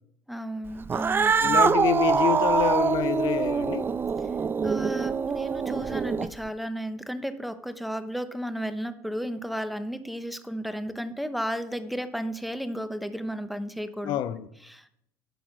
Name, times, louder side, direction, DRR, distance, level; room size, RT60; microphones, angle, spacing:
voice 1, 0.3-1.6 4.6-14.2 14.6-14.9, equal, ahead, 0.9 m, -33 dB
Cat, 0.8-6.5, right 5 dB, 25° right, 0.5 m, -24 dB
voice 2, 1.4-3.9 14.0-14.5, left 12 dB, 60° left, 0.7 m, -27 dB
10.0 x 6.5 x 6.0 m
supercardioid pair, 85°, 9 cm